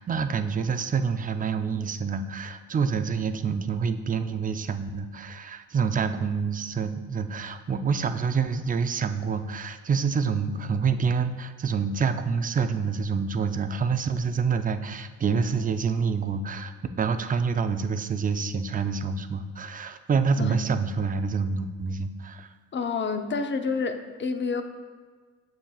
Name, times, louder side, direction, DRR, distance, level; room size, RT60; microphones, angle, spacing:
voice 1, 0.0-22.5, right 5 dB, 25° right, 9 dB, 0.5 m, -27 dB
voice 2, 22.7-24.6, left 4 dB, 30° left, 7 dB, 0.7 m, -28 dB
9.0 x 7.0 x 2.4 m, 1.5 s
supercardioid pair, 75°, 35 cm